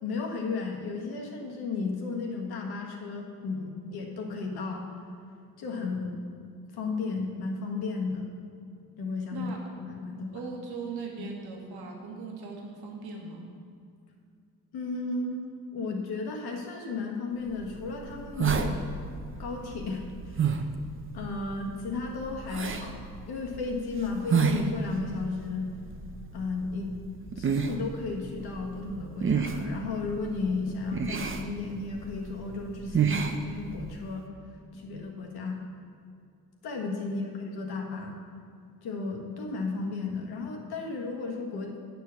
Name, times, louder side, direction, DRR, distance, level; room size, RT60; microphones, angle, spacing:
voice 1, 0.0-4.9 5.6-6.1 6.7-8.3 9.0-9.5 9.8-10.4 11.2-11.3 14.7-15.4 15.7-18.9 19.4-20.0 20.3-20.6 21.1-25.6 26.3-26.9 27.3-34.3 34.7-35.6 36.6-38.1 38.8-41.7, left 3 dB, 80° left, 0 dB, 1.5 m, -34 dB
voice 2, 10.3-13.5 37.0-37.3, right 4 dB, 85° right, 0 dB, 1.4 m, -39 dB
sound 1, 17.5-34.1, right 6 dB, 35° right, 0.7 m, -32 dB
9.0 x 4.6 x 6.9 m, 2.4 s
cardioid pair, 75°, 37 cm